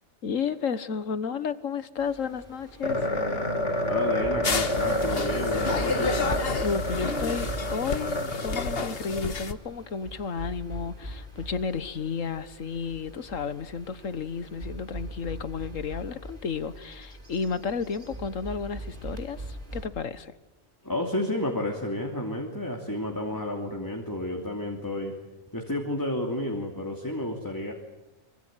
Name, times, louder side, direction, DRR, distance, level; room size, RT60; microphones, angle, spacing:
voice 1, 0.2-3.1 6.6-20.3, left 6 dB, 80° left, 14 dB, 1.6 m, -32 dB
sound 1, 2.0-19.9, right 1 dB, 40° right, 4.0 m, -41 dB
sound 2, 2.8-9.2, left 1 dB, 65° left, 4.4 m, -29 dB
voice 2, 3.9-6.4 20.8-25.1 25.5-27.7, left 1 dB, 15° left, 1 dB, 3.0 m, -31 dB
sound 3, 4.4-9.5, left 5 dB, 50° left, 1.5 m, -31 dB
26.0 x 24.5 x 9.1 m, 1.0 s
omnidirectional pair, 1.3 m